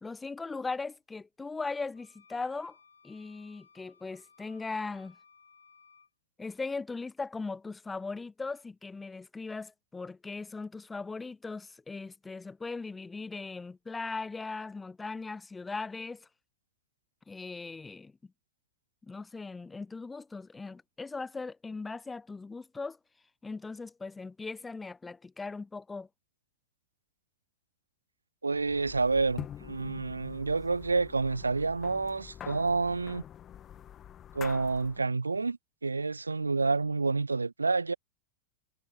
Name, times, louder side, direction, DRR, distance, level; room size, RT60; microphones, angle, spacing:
voice 1, 0.0-2.8 3.0-5.2 6.4-16.3 17.3-18.1 19.0-23.0 23.4-26.1, left 4 dB, 10° left, 0.3 m, -39 dB
sound 1, 1.9-6.1, left 5 dB, 75° left, 1.6 m, -61 dB
voice 2, 28.4-33.2 34.3-37.9, right 3 dB, 80° right, 0.5 m, -29 dB
sound 2, 28.5-35.0, left 10 dB, 25° left, 1.4 m, -46 dB
figure-of-eight pair, 90°, 0 cm